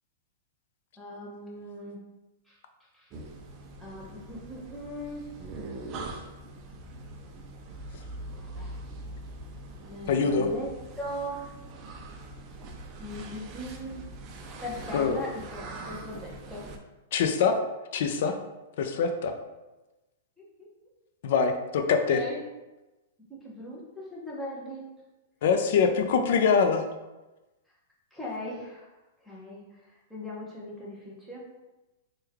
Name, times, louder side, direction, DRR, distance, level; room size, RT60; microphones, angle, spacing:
voice 1, 1.0-2.0 2.5-2.6 2.9-3.1 3.8-5.3 8.6-8.8 9.8-11.6 13.0-14.1 14.6-16.7 20.4-20.7 21.8-22.4 23.3-24.9 28.1-28.9 29.2-31.6, left 1 dB, ahead, -6 dB, 0.7 m, -39 dB
sound 1, 3.1-16.8, right 2 dB, 30° right, 0.4 m, -42 dB
voice 2, 10.1-10.5 14.9-15.2 17.1-17.5 17.9-18.4 18.8-19.3 21.2-21.5 21.9-22.2 25.4-26.8, left 6 dB, 60° left, 6 dB, 0.4 m, -23 dB
3.1 x 2.2 x 3.5 m, 1.1 s
hypercardioid pair, 150°, 0 cm